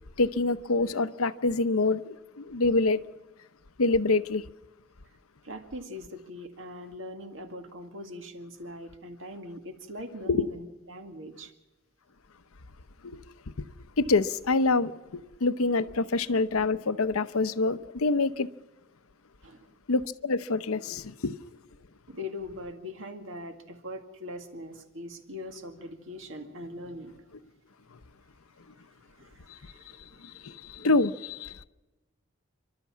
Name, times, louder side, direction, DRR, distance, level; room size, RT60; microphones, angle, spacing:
voice 1, 0.2-3.0 3.8-4.4 10.3-10.5 13.0-13.7 14.0-18.5 19.9-21.4 29.5-29.7 30.2-31.6, left 3 dB, 90° left, 0.8 m, -26 dB
voice 2, 5.4-11.5 19.4-19.7 22.1-27.3 29.2-30.9, left 1 dB, 65° right, 2.1 m, -42 dB
29.5 x 12.5 x 7.4 m
head